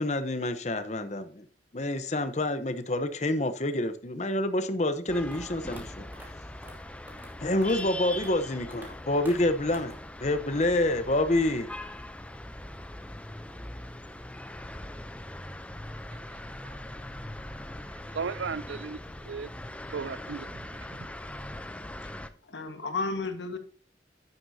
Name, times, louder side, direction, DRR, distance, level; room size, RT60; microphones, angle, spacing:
voice 1, 0.0-1.4 1.7-6.1 7.4-9.9 10.2-11.7, left 1 dB, 40° left, 0.9 m, -27 dB
sound 1, 5.1-22.3, left 1 dB, 5° left, 0.5 m, -41 dB
sound 2, 5.3-5.4 5.7-5.8 6.1-6.3 6.6-6.8 7.1-7.3 7.6-7.9 8.1-8.3 8.7-8.9 9.3-9.4 9.7-10.0, equal, 10° right, 2.4 m, -47 dB
voice 2, 18.1-19.0 19.2-19.5 19.9-20.5 20.8-21.1, right 5 dB, 85° right, 0.5 m, -35 dB
voice 3, 22.5-23.6, left 3 dB, 75° left, 1.5 m, -33 dB
11.0 x 9.6 x 2.8 m
head